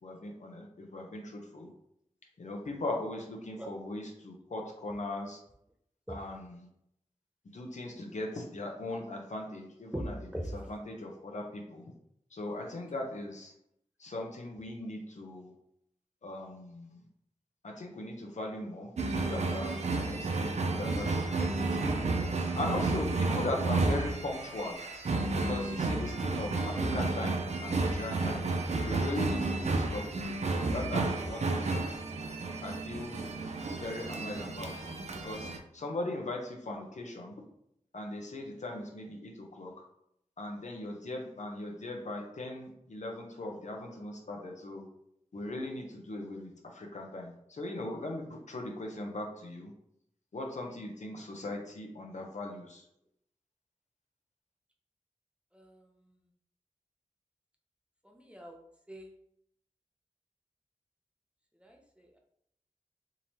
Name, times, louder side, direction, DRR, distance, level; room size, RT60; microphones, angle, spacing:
voice 1, 0.0-1.7 2.4-5.4 6.1-6.7 7.5-10.2 10.5-11.8 12.3-13.5 14.0-15.5 16.2-17.0 17.6-22.0 22.5-24.8 25.3-28.5 28.8-31.8 32.6-33.2 33.8-34.9 35.2-37.3 37.9-39.7 40.4-44.8 45.3-49.7 50.3-52.9, left 2 dB, 65° left, 0 dB, 0.8 m, -39 dB
sound 1, 19.0-35.6, right 3 dB, 60° right, 0.5 m, -32 dB
voice 2, 58.0-58.6 58.9-59.1 61.6-62.2, equal, 10° right, 0 dB, 0.6 m, -41 dB
3.8 x 2.7 x 3.0 m, 0.75 s
wide cardioid pair, 80°, 13 cm